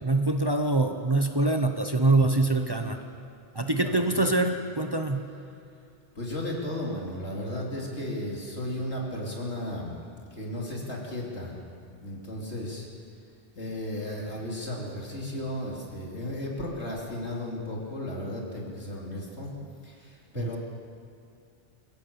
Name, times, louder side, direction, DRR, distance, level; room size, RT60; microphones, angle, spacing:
voice 1, 0.0-3.0 3.5-5.2 20.4-20.5, right 2 dB, 25° right, 5 dB, 0.9 m, -24 dB
voice 2, 3.8-4.2 6.2-10.0 10.3-11.5 12.0-12.9 13.6-19.5 19.8-20.6, left 1 dB, 85° left, -2 dB, 3.5 m, -34 dB
22.0 x 16.5 x 7.1 m, 2.5 s
omnidirectional pair, 1.1 m